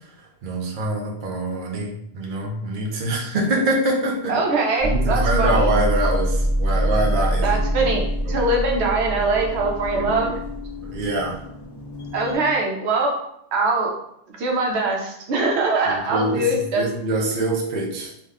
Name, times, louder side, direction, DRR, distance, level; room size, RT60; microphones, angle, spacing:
voice 1, 0.4-4.4 4.8-7.9 8.2-8.4 10.8-11.4 15.9-16.5 16.7-18.1, right 2 dB, 60° right, 0 dB, 0.7 m, -24 dB
voice 2, 4.3-5.7 7.4-10.4 12.1-13.1 13.5-13.9 14.4-16.8, right 2 dB, 85° right, 0 dB, 0.9 m, -22 dB
sound 1, 4.8-12.5, equal, 25° left, 0.7 m, -25 dB
2.6 x 2.1 x 3.4 m, 0.76 s
omnidirectional pair, 1.1 m